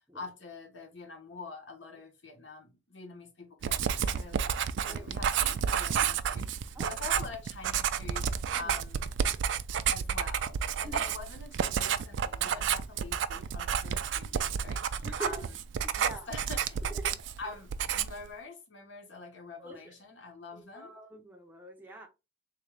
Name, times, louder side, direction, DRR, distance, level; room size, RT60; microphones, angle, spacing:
voice 1, 0.1-8.3 8.5-9.1 9.9-15.5 16.0-16.8 17.4-21.0, left 4 dB, 75° left, 1.1 m, -45 dB
Writing, 3.6-17.4 17.7-18.3, right 8 dB, 75° right, 0.3 m, -31 dB
voice 2, 15.0-15.4 15.9-16.3 16.9-17.0 19.6-19.9 20.5-22.1, right 2 dB, 10° right, 0.5 m, -44 dB
3.6 x 2.5 x 3.2 m
head